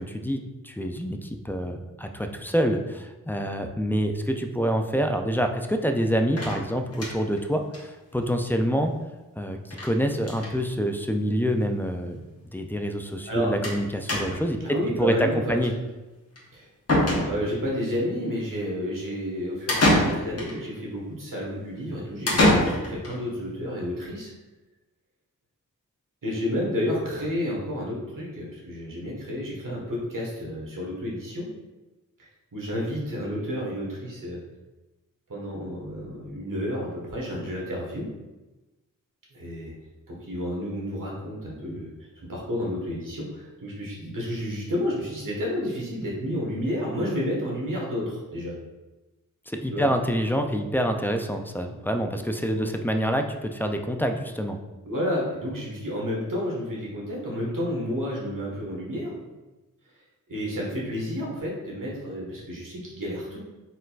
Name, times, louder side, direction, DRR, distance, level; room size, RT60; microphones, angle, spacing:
voice 1, 0.0-8.9 9.4-12.2 12.5-14.6 15.0-15.7 49.5-54.6, equal, 5° left, 5 dB, 0.3 m, -26 dB
sound 1, 6.4-7.4 7.7-7.8 8.1-8.2 8.4-8.5 9.7-9.9 10.2-10.6 11.4-11.5 11.8-11.9 13.6-13.8 14.1-14.6 16.4-16.5 16.9-17.7 19.7-20.6 22.3-23.1, left 1 dB, 45° left, 1.1 m, -24 dB
voice 2, 14.6-15.6 16.5-16.7 17.2-24.3 26.2-31.5 32.5-34.4 35.3-38.1 39.3-39.7 40.1-41.9 42.3-48.5 49.7-49.9 52.5-52.6 54.8-59.1 60.3-63.4, equal, 70° right, -4 dB, 1.4 m, -30 dB
4.4 x 3.8 x 2.4 m, 1.1 s
wide cardioid pair, 75°, 33 cm